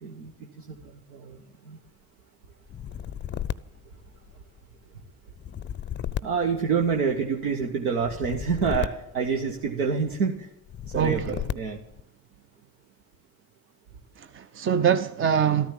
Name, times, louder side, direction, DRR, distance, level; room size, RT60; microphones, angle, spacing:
voice 1, 0.0-1.8 6.2-10.5 10.8-11.8, right 5 dB, 70° right, 1.4 m, -28 dB
sound 1, 2.7-4.6 5.3-7.3 8.0-9.9 10.7-12.0, left 10 dB, 25° left, 0.6 m, -35 dB
voice 2, 10.9-11.3 14.2-15.7, right 8 dB, 25° right, 0.6 m, -24 dB
14.0 x 13.5 x 7.4 m
figure-of-eight pair, 50°, 46 cm